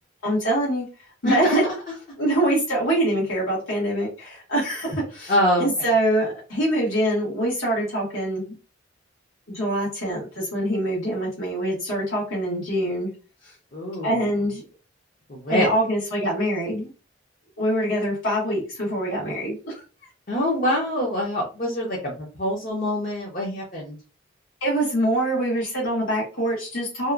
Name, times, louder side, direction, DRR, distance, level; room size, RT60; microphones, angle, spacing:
voice 1, 0.2-0.9 1.2-1.6 2.2-8.5 9.5-13.1 14.0-14.6 15.5-16.9 17.6-19.7 24.6-27.1, right 1 dB, 75° left, -6 dB, 1.3 m, -24 dB
voice 2, 1.2-1.6 5.3-5.9 13.7-14.2 15.3-15.7 20.3-24.0, equal, 40° left, -3 dB, 0.7 m, -24 dB
2.8 x 2.3 x 2.4 m, 0.34 s
head